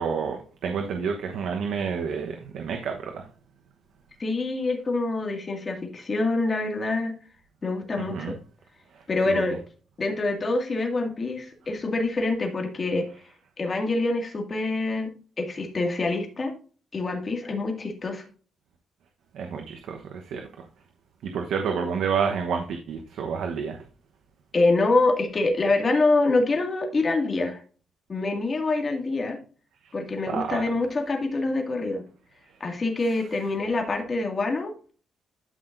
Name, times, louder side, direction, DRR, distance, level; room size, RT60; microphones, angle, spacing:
voice 1, 0.0-3.2 8.0-8.4 8.9-9.6 19.3-20.6 21.2-23.8 29.8-29.9 30.3-30.6, right 6 dB, 75° right, 1.1 m, -29 dB
voice 2, 4.2-7.1 7.6-8.4 9.1-9.6 10.0-13.1 13.6-15.1 15.4-16.5 16.9-18.3 24.5-27.6 28.1-29.4 29.9-32.0 32.6-34.7, left 2 dB, 30° left, 2.2 m, -25 dB
12.5 x 5.9 x 2.6 m
cardioid pair, 140°, 0 cm